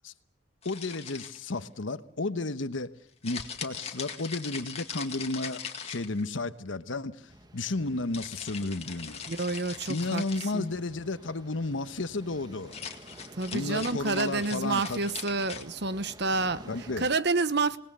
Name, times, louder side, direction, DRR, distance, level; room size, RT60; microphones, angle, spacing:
voice 1, 0.6-2.9 3.2-9.2 9.9-12.7 13.5-15.0 16.7-17.1, left 2 dB, 85° left, 1.1 m, -33 dB
sound 1, 0.6-1.6 3.2-6.4 8.1-10.6 12.6-15.6, left 7 dB, 35° left, 2.1 m, -41 dB
sound 2, 7.3-17.1, right 1 dB, 20° right, 1.3 m, -51 dB
sound 3, 7.8-12.9, left 1 dB, 55° left, 2.0 m, -58 dB
voice 2, 9.3-10.2 10.5-10.7 13.4-17.8, right 3 dB, 60° right, 1.0 m, -29 dB
27.0 x 19.5 x 6.8 m
head